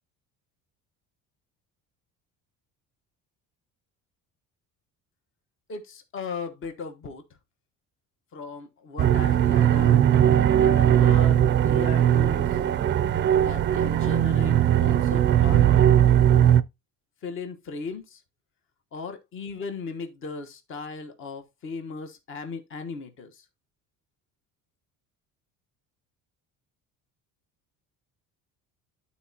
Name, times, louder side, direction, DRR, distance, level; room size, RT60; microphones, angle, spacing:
voice 1, 5.7-7.2 8.3-10.1 10.6-12.5 13.4-15.6 17.2-18.2 18.9-23.4, left 4 dB, 40° left, 1.1 m, -37 dB
sound 1, 9.0-16.6, right 10 dB, 35° right, 0.4 m, -19 dB
11.5 x 4.1 x 2.8 m
cardioid pair, 155°, 33 cm